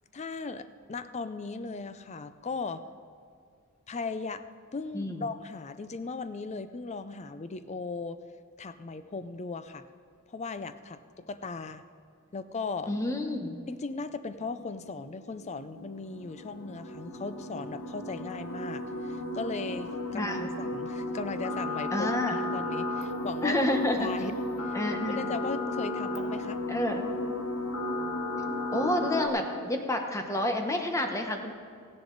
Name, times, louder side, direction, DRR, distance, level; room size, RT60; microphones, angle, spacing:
voice 1, 0.1-2.8 3.9-4.4 4.7-8.2 8.6-9.8 10.3-11.8 12.3-12.9 13.7-23.7 24.0-24.3 24.6-24.8 25.1-26.6, left 4 dB, 30° left, 12 dB, 0.4 m, -37 dB
voice 2, 4.9-5.3 12.9-13.6 20.1-20.5 21.9-22.4 23.4-24.1 24.7-25.2 26.7-27.1 28.7-31.6, left 1 dB, 15° left, 4 dB, 0.9 m, -29 dB
sound 1, 14.3-29.3, left 1 dB, 65° left, 1.1 m, -34 dB
15.5 x 10.5 x 3.9 m, 2.2 s
head